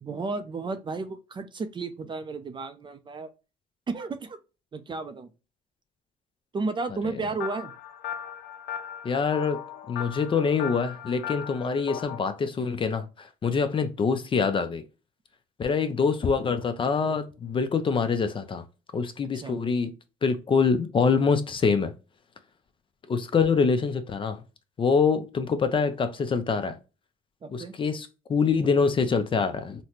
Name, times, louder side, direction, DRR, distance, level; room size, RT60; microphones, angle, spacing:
voice 1, 0.0-3.3 3.9-4.4 4.7-5.3 6.5-7.7 19.3-19.6 27.4-27.7, right 3 dB, 30° right, 0.5 m, -33 dB
sound 1, 7.4-12.2, left 9 dB, 85° left, 0.5 m, -37 dB
voice 2, 9.0-9.6 9.9-14.8 15.6-18.6 18.9-19.9 20.2-21.9 23.1-24.4 24.8-26.8 27.5-29.8, left 5 dB, 30° left, 0.5 m, -25 dB
4.0 x 2.1 x 2.9 m
cardioid pair, 110°, 17 cm